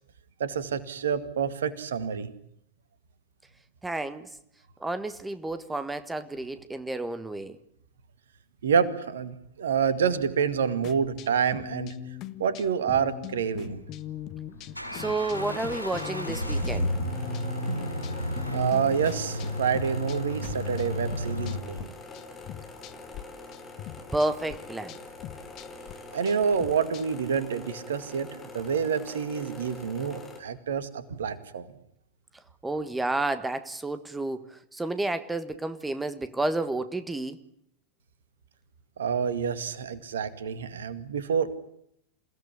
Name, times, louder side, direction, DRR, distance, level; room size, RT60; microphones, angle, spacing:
voice 1, 0.4-2.3 8.6-11.9 12.4-13.8 18.5-21.9 26.1-31.7 39.0-41.6, right 7 dB, 65° right, 13 dB, 2.1 m, -28 dB
voice 2, 3.8-4.3 4.8-7.6 14.9-16.9 24.1-25.0 32.6-37.4, right 2 dB, 10° right, 12 dB, 1.4 m, -31 dB
sound 1, 10.8-21.9 22.1-23.2 23.5-27.3, left 12 dB, 40° left, 1.5 m, -42 dB
sound 2, 13.7-21.6, equal, 90° right, 4.8 m, -32 dB
sound 3, 15.3-30.4, left 3 dB, 15° left, 6.4 m, -44 dB
28.0 x 17.0 x 9.9 m, 0.72 s
figure-of-eight pair, 90°, 0 cm